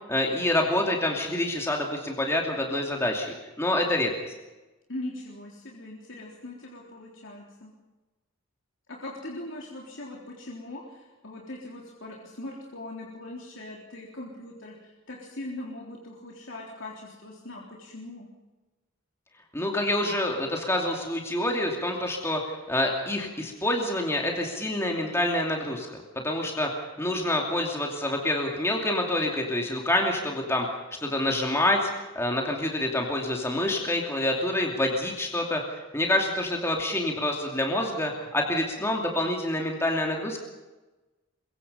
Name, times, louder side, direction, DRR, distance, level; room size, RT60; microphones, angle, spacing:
voice 1, 0.1-4.1 19.5-25.9 26.2-30.7 31.0-31.9 32.1-40.4, left 1 dB, 10° left, 1 dB, 2.7 m, -27 dB
voice 2, 4.9-7.7 8.9-18.3, left 1 dB, 60° left, -2 dB, 3.7 m, -40 dB
23.5 x 22.0 x 5.6 m, 1.1 s
head